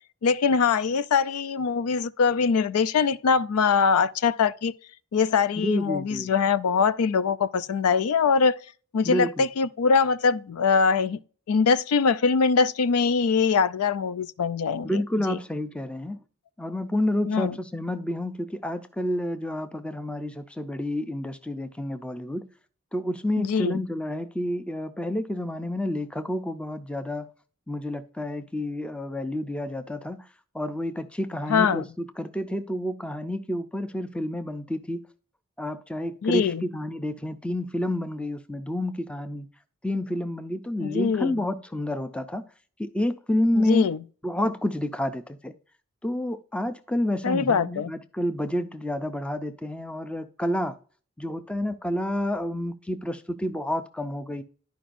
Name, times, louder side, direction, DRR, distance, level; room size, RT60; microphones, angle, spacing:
voice 1, 0.2-4.7 5.1-8.6 8.9-11.2 11.5-15.0 15.3-15.4 17.3-17.6 23.4-23.8 31.5-31.8 36.2-36.6 40.8-41.4 43.5-44.0 47.2-47.9, left 5 dB, 85° left, 0.4 m, -23 dB
voice 2, 5.6-6.3 9.0-9.4 14.8-16.2 16.6-22.5 22.9-27.3 27.7-30.2 30.5-35.0 35.6-39.5 39.8-42.4 42.8-43.8 44.2-45.5 46.0-50.8 51.2-54.4, left 1 dB, 5° left, 0.4 m, -29 dB
11.5 x 5.0 x 2.5 m
head